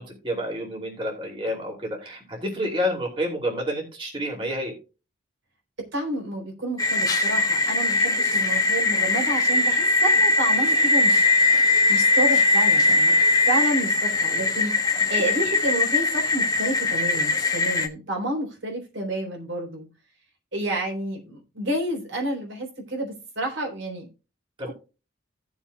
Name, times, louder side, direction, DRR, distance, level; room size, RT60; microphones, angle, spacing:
voice 1, 0.0-4.7 24.6-24.7, equal, 25° right, -1 dB, 2.9 m, -29 dB
voice 2, 5.9-11.3 11.9-13.2 13.5-14.8 15.1-19.9 20.5-24.1, right 1 dB, 65° right, 0 dB, 3.8 m, -29 dB
sound 1, 6.8-17.9, left 2 dB, 20° left, 1.0 m, -21 dB
17.0 x 7.1 x 2.3 m, 0.31 s
head